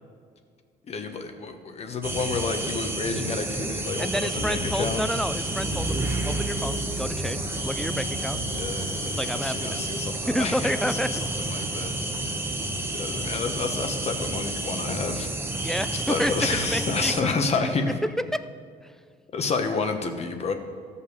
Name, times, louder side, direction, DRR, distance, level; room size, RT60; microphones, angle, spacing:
voice 1, 0.9-5.0 8.5-11.9 12.9-15.3 15.9-18.0 19.3-20.5, left 4 dB, 40° left, 6 dB, 1.1 m, -30 dB
sound 1, 2.0-17.2, right 2 dB, 15° right, 1.1 m, -30 dB
voice 2, 4.0-6.0 6.2-8.4 9.0-9.8 10.3-11.2 15.6-17.3 17.6-17.7 18.3-18.4, equal, 5° left, 12 dB, 0.4 m, -29 dB
sound 2, 4.4-10.5, left 5 dB, 65° left, 0.9 m, -40 dB
14.0 x 5.7 x 6.6 m, 2.1 s
cardioid pair, 110°, 17 cm